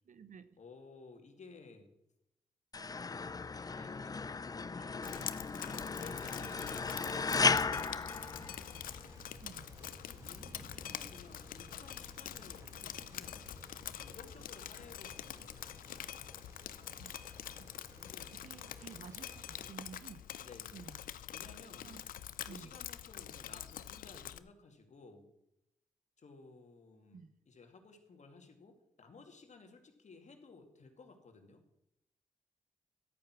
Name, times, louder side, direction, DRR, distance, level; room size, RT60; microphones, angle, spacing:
voice 1, 0.0-0.6 6.4-6.5 9.4-9.7 17.0-17.3 17.6-17.7 18.2-20.2 20.7-21.0 21.8-22.0 22.4-22.8 27.1-27.3, right 6 dB, 65° right, 13 dB, 1.0 m, -52 dB
voice 2, 0.6-1.9 2.8-5.3 5.8-8.8 9.8-13.5 14.0-16.1 18.0-18.6 20.4-20.8 21.3-22.0 22.4-25.3 26.2-31.6, left 4 dB, 55° left, 5 dB, 2.4 m, -56 dB
sound 1, 2.7-9.0, left 4 dB, 25° left, 0.5 m, -35 dB
Drip, 5.0-24.4, left 11 dB, 75° left, 0.6 m, -46 dB
sound 2, 8.1-19.7, equal, 25° right, 4.8 m, -56 dB
12.5 x 8.8 x 6.1 m, 0.83 s
supercardioid pair, 50°, 14 cm